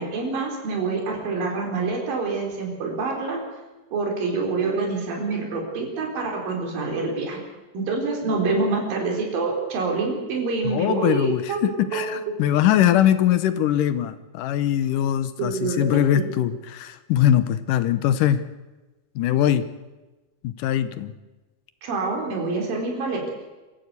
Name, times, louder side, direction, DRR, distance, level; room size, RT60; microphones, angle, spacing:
voice 1, 0.0-3.4 3.9-7.4 7.7-11.6 11.9-12.1 15.4-15.9 16.1-16.3 21.8-23.2, right 4 dB, 65° right, 1 dB, 5.6 m, -26 dB
voice 2, 10.6-18.4 19.2-19.7 20.4-21.1, left 11 dB, 70° left, 12 dB, 2.1 m, -21 dB
25.0 x 14.0 x 8.3 m, 1.2 s
omnidirectional pair, 4.4 m